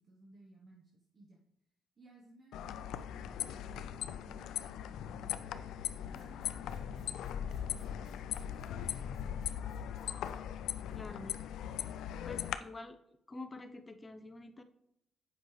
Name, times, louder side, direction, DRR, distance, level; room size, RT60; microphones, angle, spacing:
voice 1, 0.0-1.4 2.0-5.5 6.0-9.8 10.5-11.0 11.8-12.5, right 1 dB, 40° right, -1 dB, 1.0 m, -60 dB
sound 1, 2.5-12.5, left 10 dB, 85° left, 0.3 m, -39 dB
sound 2, 6.0-10.4, right 1 dB, 70° right, 2.1 m, -60 dB
voice 2, 10.9-11.4 12.2-13.0 13.3-14.6, left 2 dB, 25° left, 8 dB, 0.7 m, -47 dB
7.9 x 5.4 x 3.2 m, 0.80 s
cardioid pair, 90°, 0 cm